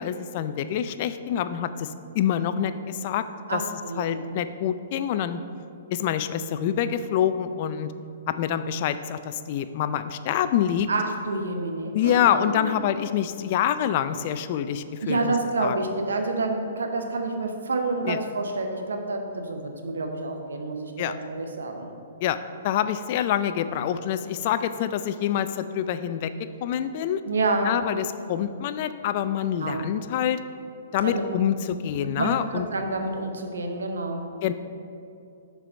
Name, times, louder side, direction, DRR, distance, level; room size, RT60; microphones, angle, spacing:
voice 1, 0.0-3.2 3.5-3.6 4.0-5.4 5.9-7.9 8.3-10.9 11.9-15.3 15.6-15.8 18.0-18.2 21.0-21.1 22.2-22.4 22.6-26.3 26.6-27.2 27.6-30.4 30.9-32.7 34.4-34.5, left 10 dB, 45° left, 12 dB, 0.3 m, -26 dB
voice 2, 3.5-4.2 10.9-12.8 15.0-21.9 27.3-27.7 29.6-29.9 31.0-31.2 32.0-34.2, right 3 dB, 80° right, 4 dB, 0.9 m, -28 dB
6.7 x 4.6 x 5.1 m, 2.6 s
hypercardioid pair, 125°, 0 cm